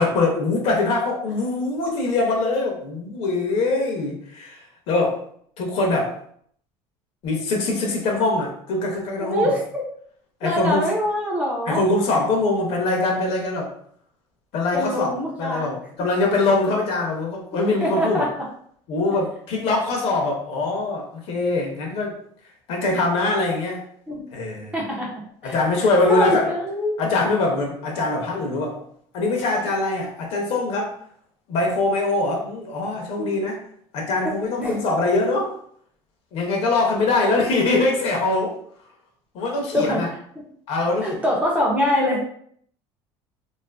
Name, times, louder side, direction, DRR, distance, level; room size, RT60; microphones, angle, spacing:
voice 1, 0.0-5.2 5.6-6.1 7.2-9.5 10.4-10.9 11.7-13.7 14.5-15.1 15.4-18.3 18.9-22.1 22.7-23.8 24.3-24.7 25.4-26.5 27.0-28.8 29.1-30.9 31.5-33.6 33.9-35.5 36.3-38.5 39.3-40.1 40.7-41.2, left 2 dB, 55° left, 0 dB, 0.6 m, -23 dB
voice 2, 9.2-9.8 10.4-11.8 14.7-15.7 17.6-18.5 24.1-24.3 24.7-25.1 25.4-27.0 33.2-33.4 34.6-34.7 39.7-40.0 40.4-40.5 41.0-42.3, left 1 dB, 10° right, -3 dB, 0.4 m, -24 dB
2.5 x 2.4 x 2.2 m, 0.64 s
cardioid pair, 155°, 12 cm